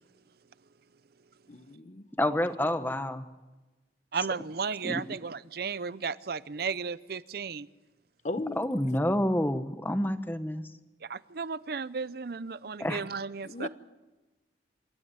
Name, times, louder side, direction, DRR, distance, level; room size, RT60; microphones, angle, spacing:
voice 1, 1.5-2.1 8.2-8.7 12.8-12.9 13.4-13.7, left 2 dB, 40° left, 1.0 m, -36 dB
voice 2, 2.2-3.2 4.8-5.0 8.6-10.6 12.8-13.0, left 1 dB, 10° left, 1.1 m, -28 dB
voice 3, 4.1-7.7 11.0-13.7, right 5 dB, 60° right, 0.6 m, -34 dB
26.5 x 13.0 x 9.6 m
head